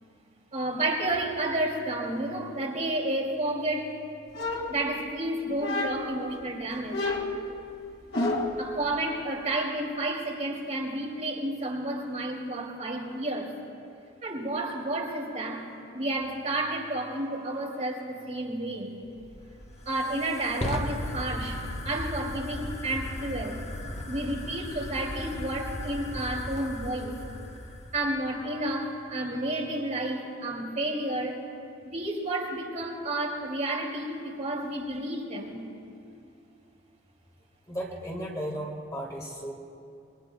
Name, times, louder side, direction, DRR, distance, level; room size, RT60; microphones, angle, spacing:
voice 1, 0.5-4.0 4.7-7.1 8.6-13.5 14.2-19.0 19.9-23.6 24.1-27.1 27.9-31.4 31.8-35.6, right 1 dB, 35° right, -3 dB, 2.7 m, -31 dB
sound 1, 4.3-5.2 5.6-6.2 6.9-8.7, left 2 dB, 85° left, 2.2 m, -30 dB
Fire, 19.0-28.0, left 1 dB, 35° left, 1.0 m, -37 dB
voice 2, 37.7-39.5, equal, 15° left, -2 dB, 1.8 m, -35 dB
27.5 x 23.0 x 2.3 m, 2.5 s
head